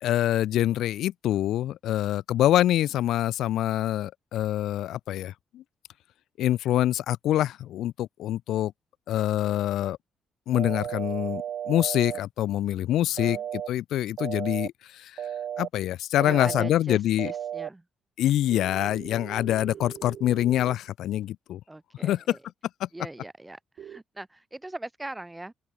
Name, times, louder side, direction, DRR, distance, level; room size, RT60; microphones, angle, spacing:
voice 1, 0.0-5.6 6.4-8.7 9.1-10.0 10.5-15.2 15.6-17.3 18.2-21.6 22.0-22.4 22.8-22.9, left 13 dB, 80° left, 0.5 m, -25 dB
sound 1, 10.5-12.2 13.2-13.7 14.2-14.7 15.2-15.7 16.2-16.7 17.2-17.7 18.5-20.7 23.8-24.0, right 9 dB, 65° right, 1.7 m, -35 dB
voice 2, 16.2-17.8 21.7-22.4 22.9-25.5, right 2 dB, 15° right, 1.0 m, -40 dB
cardioid pair, 90°, 0 cm